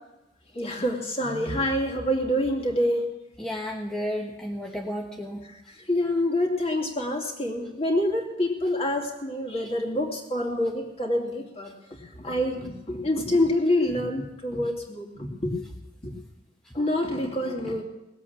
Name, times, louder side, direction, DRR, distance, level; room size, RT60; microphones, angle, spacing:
voice 1, 0.5-3.1 5.9-11.7 12.2-15.6 16.0-16.1 16.7-17.8, left 1 dB, 35° left, 1 dB, 2.7 m, -26 dB
voice 2, 3.4-5.4, equal, 5° left, -1 dB, 1.2 m, -32 dB
19.5 x 8.1 x 7.3 m, 0.98 s
head